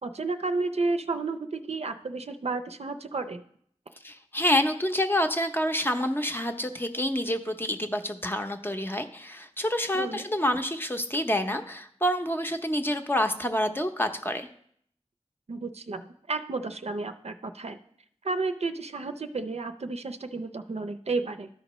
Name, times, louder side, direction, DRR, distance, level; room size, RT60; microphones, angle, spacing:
voice 1, 0.0-3.4 9.9-10.2 15.5-17.8 18.2-21.5, right 3 dB, 65° right, 8 dB, 0.5 m, -32 dB
voice 2, 4.0-14.5, left 1 dB, 20° left, 5 dB, 0.7 m, -27 dB
13.0 x 5.2 x 3.0 m, 0.65 s
wide cardioid pair, 60°, 11 cm